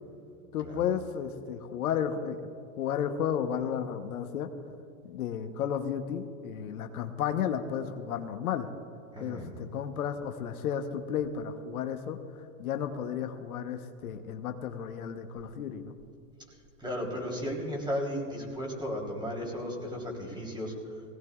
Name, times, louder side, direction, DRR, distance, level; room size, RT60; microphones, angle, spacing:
voice 1, 0.5-2.4 2.8-4.5 5.0-8.7 9.2-16.0, left 8 dB, 85° left, 6 dB, 1.1 m, -33 dB
voice 2, 9.1-9.5 16.8-20.7, equal, 10° right, -2 dB, 3.5 m, -34 dB
20.5 x 17.5 x 2.4 m, 2.6 s
hypercardioid pair, 120°, 43 cm